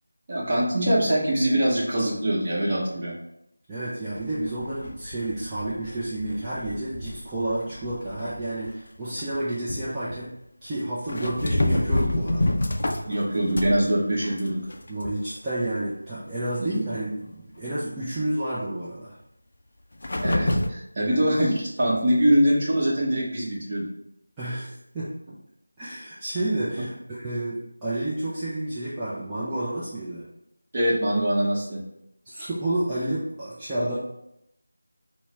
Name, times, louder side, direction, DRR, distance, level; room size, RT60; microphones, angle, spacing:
voice 1, 0.3-3.1 13.1-14.7 16.6-16.7 20.2-23.9 30.7-31.8, right 1 dB, 30° right, -6 dB, 1.0 m, -23 dB
voice 2, 3.7-10.3 10.6-12.6 12.9-13.1 14.9-19.2 21.0-21.2 24.4-25.1 25.8-30.3 32.2-34.0, right 1 dB, 10° right, -12 dB, 0.4 m, -30 dB
sound 1, 4.2-8.7 9.2-9.4 9.7-10.2 11.1-13.9 14.2-15.4 15.7-15.8 16.3-16.4 20.0-20.7, left 1 dB, 50° left, 0.4 m, -28 dB
4.4 x 2.1 x 3.3 m, 0.80 s
figure-of-eight pair, 170°, 0 cm